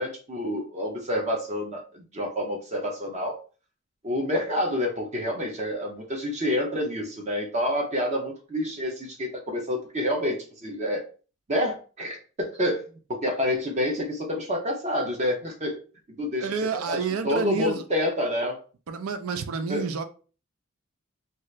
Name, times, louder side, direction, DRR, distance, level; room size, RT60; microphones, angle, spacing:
voice 1, 0.0-3.4 4.0-11.0 11.5-15.8 16.1-17.0 17.2-18.6 19.7-19.8, left 1 dB, 35° right, 0.6 m, -28 dB
voice 2, 16.4-17.8 18.9-20.0, right 5 dB, 90° right, 0.4 m, -29 dB
2.8 x 2.4 x 3.1 m
head